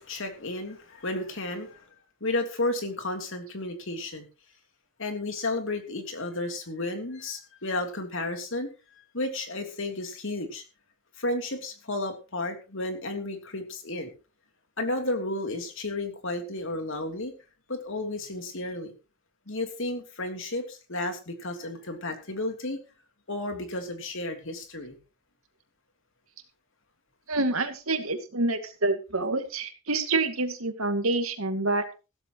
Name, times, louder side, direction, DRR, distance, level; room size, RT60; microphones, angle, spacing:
voice 1, 0.0-1.8 2.2-4.3 5.0-8.7 9.1-10.6 11.2-14.1 14.8-17.3 17.7-18.9 19.5-22.8 23.3-25.0, left 2 dB, 65° left, 5 dB, 3.1 m, -32 dB
voice 2, 27.3-31.8, right 2 dB, 85° right, 7 dB, 2.3 m, -27 dB
15.5 x 13.5 x 3.1 m, 0.31 s
head